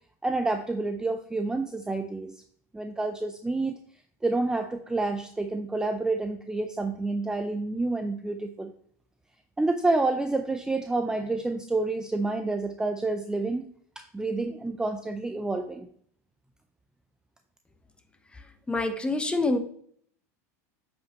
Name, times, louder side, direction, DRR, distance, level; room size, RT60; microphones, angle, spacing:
voice 1, 0.2-2.4 2.7-3.7 4.2-8.7 9.6-13.7 14.0-15.9, right 2 dB, 10° right, 6 dB, 0.5 m, -28 dB
voice 2, 18.3-19.6, left 2 dB, 10° left, 8 dB, 0.8 m, -27 dB
8.1 x 5.1 x 3.0 m, 0.62 s
hypercardioid pair, 105°, 9 cm